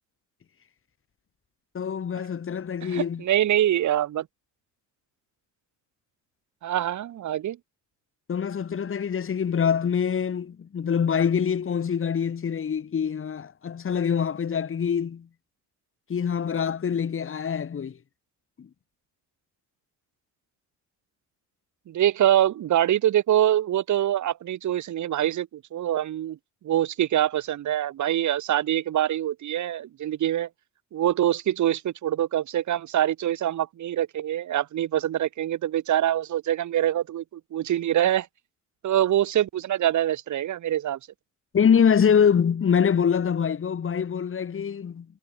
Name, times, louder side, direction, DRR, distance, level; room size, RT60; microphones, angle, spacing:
voice 1, 1.7-3.2 8.3-15.3 16.1-18.0 18.6-18.7 41.5-45.1, left 7 dB, 45° left, 2.8 m, -24 dB
voice 2, 2.8-4.3 6.6-7.6 21.9-26.4 26.6-30.5 30.9-38.3 38.8-41.0, right 12 dB, 70° right, 3.5 m, -24 dB
cardioid pair, 90°, 30 cm